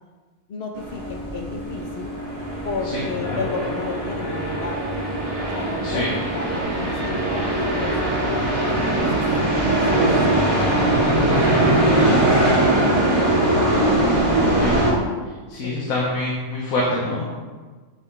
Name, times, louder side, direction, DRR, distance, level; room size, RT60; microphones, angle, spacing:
voice 1, 0.5-2.1 2.6-4.9 5.5-8.1 8.8-9.2 9.7-9.8 10.2-11.2 11.5-13.9 15.6-16.2, left 4 dB, 55° left, 3 dB, 1.2 m, -33 dB
sound 1, 0.7-14.9, right 1 dB, 25° right, 2.7 m, -21 dB
voice 2, 14.5-14.9 15.5-17.2, left 2 dB, 85° left, -4 dB, 1.6 m, -25 dB
10.5 x 5.4 x 3.3 m, 1.4 s
omnidirectional pair, 1.4 m